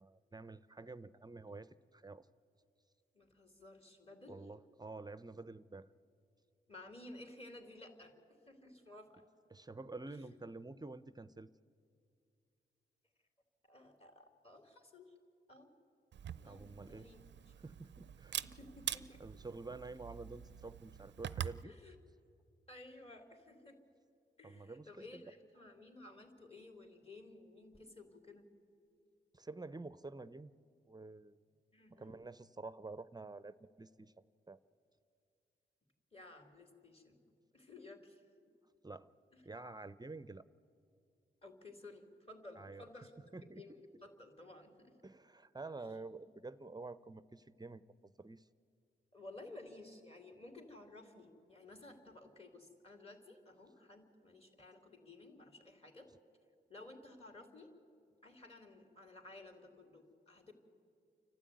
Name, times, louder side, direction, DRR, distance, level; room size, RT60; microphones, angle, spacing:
voice 1, 0.0-2.3 4.3-5.9 9.5-11.5 16.4-17.1 17.6-18.4 19.2-21.7 24.4-25.2 29.3-30.5 30.9-31.4 31.9-34.1 34.5-34.6 38.8-39.1 39.4-40.4 42.6-42.8 43.3-43.6 45.0-48.5, right 3 dB, 20° right, 15 dB, 0.6 m, -49 dB
voice 2, 3.1-4.5 6.7-8.1 8.5-9.3 10.1-10.4 13.6-15.1 15.5-15.7 16.4-17.5 18.4-19.2 21.6-22.0 22.7-23.8 24.4-28.5 31.7-32.1 36.1-37.2 37.5-38.2 39.3-39.4 41.4-45.0 45.8-45.9 49.1-56.1 56.7-57.7 58.2-60.5, left 2 dB, 30° left, 4 dB, 3.7 m, -55 dB
Camera, 16.1-21.6, right 9 dB, 65° right, 0.5 m, -45 dB
29.0 x 12.5 x 9.4 m, 2.4 s
cardioid pair, 55°, 20 cm